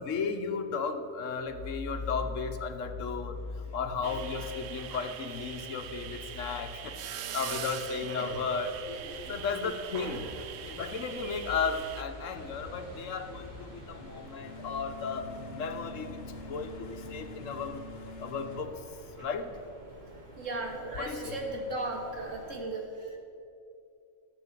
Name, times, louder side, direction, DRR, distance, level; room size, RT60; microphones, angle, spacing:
voice 1, 0.0-7.0 7.3-8.8 9.2-10.3 10.6-17.8 18.2-18.8 19.2-19.5 21.0-21.4, left 5 dB, 90° left, 8 dB, 1.3 m, -35 dB
sound 1, 1.4-19.5, left 3 dB, 55° left, 1.1 m, -45 dB
sound 2, 4.0-12.0, right 10 dB, 65° right, 0.8 m, -42 dB
sound 3, 8.2-22.6, right 1 dB, 35° right, 2.6 m, -50 dB
voice 2, 8.9-9.3 10.0-10.3 20.4-23.2, right 2 dB, 85° right, 1 dB, 2.2 m, -37 dB
13.5 x 7.4 x 7.4 m, 2.5 s
omnidirectional pair, 1.3 m